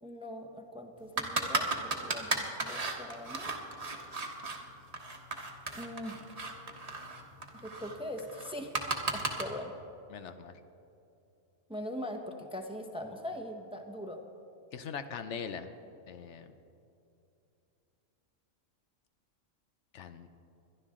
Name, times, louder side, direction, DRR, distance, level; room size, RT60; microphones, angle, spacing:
voice 1, 0.0-3.6 5.7-6.1 7.6-8.7 9.1-9.7 11.7-14.2, left 1 dB, 5° right, 4 dB, 0.7 m, -41 dB
sound 1, 1.2-4.6 4.9-9.4, right 3 dB, 30° right, 1.1 m, -35 dB
voice 2, 10.1-10.6 14.7-15.7 16.1-16.5 19.9-20.3, left 6 dB, 70° left, 9 dB, 0.9 m, -41 dB
21.5 x 11.5 x 3.7 m, 2.7 s
omnidirectional pair, 1.3 m